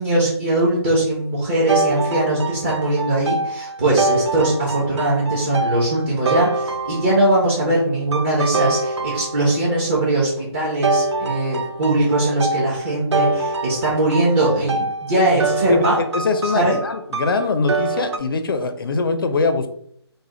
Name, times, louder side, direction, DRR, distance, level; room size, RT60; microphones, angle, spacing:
voice 1, 0.0-16.0 16.4-16.8, right 1 dB, 20° right, -6 dB, 0.7 m, -20 dB
sound 1, 1.7-7.5 8.1-9.8 10.8-18.2, right 3 dB, 75° right, 0.5 m, -25 dB
voice 2, 16.1-19.7, left 3 dB, 55° left, 8 dB, 0.4 m, -22 dB
3.4 x 2.1 x 3.7 m, 0.67 s
hypercardioid pair, 165°, 14 cm